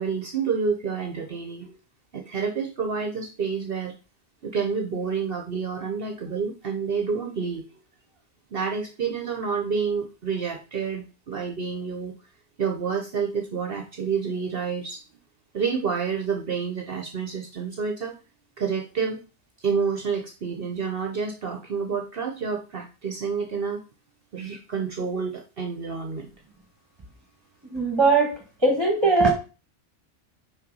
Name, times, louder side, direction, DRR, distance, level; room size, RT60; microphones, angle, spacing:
voice 1, 0.0-1.8 2.1-3.9 4.4-7.7 8.5-12.1 12.6-15.0 15.5-18.1 18.6-19.2 19.6-23.8 24.3-26.3, right 5 dB, 55° right, 4 dB, 1.0 m, -29 dB
voice 2, 27.7-28.3 28.6-29.3, right 3 dB, 20° right, 0 dB, 1.5 m, -19 dB
5.7 x 4.8 x 5.3 m, 0.33 s
omnidirectional pair, 1.2 m